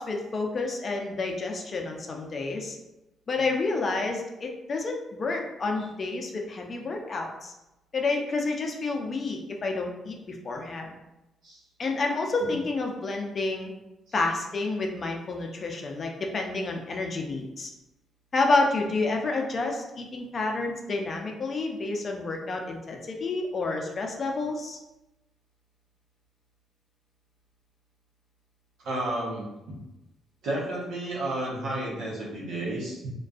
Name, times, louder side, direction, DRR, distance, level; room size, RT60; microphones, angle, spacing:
voice 1, 0.0-2.8 3.3-7.5 7.9-10.9 11.8-13.7 14.1-17.7 18.3-24.8, left 3 dB, 40° left, 2 dB, 0.4 m, -29 dB
voice 2, 28.8-29.5 30.4-33.1, right 1 dB, 90° right, -6 dB, 0.9 m, -31 dB
2.4 x 2.2 x 2.3 m, 0.96 s
cardioid pair, 90°, 0 cm